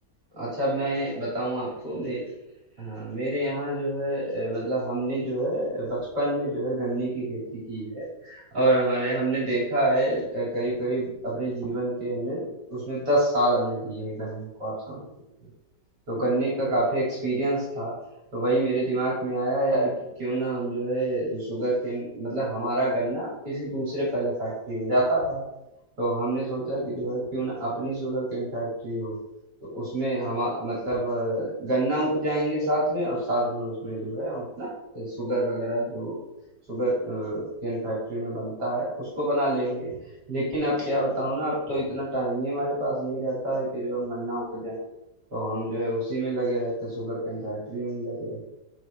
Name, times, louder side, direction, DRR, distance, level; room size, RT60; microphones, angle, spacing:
voice 1, 0.3-2.2 2.8-12.4 12.7-15.0 15.4-15.5 16.1-18.0 18.3-19.9 20.2-25.4 26.0-29.1 29.6-36.2 36.7-39.9 40.3-44.8 45.3-48.4, right 1 dB, 70° right, -6 dB, 3.3 m, -27 dB
6.3 x 4.8 x 5.1 m, 0.92 s
omnidirectional pair, 1.9 m